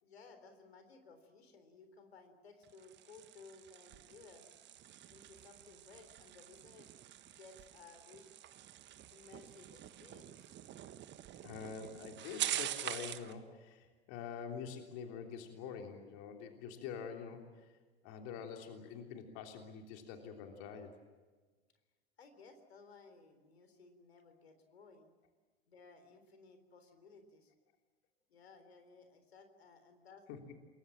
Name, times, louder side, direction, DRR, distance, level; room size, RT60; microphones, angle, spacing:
voice 1, 0.0-4.6 5.1-6.9 7.2-8.3 9.1-10.5 22.2-25.1 25.7-27.5 28.3-30.3, left 4 dB, 80° left, 7 dB, 3.8 m, -59 dB
sound 1, 2.6-13.3, right 12 dB, 35° right, 1.4 m, -45 dB
voice 2, 11.4-17.7 18.0-21.0 30.3-30.4, left 6 dB, 55° left, 3 dB, 3.4 m, -46 dB
28.5 x 22.0 x 7.5 m, 1.4 s
figure-of-eight pair, 80°, 31 cm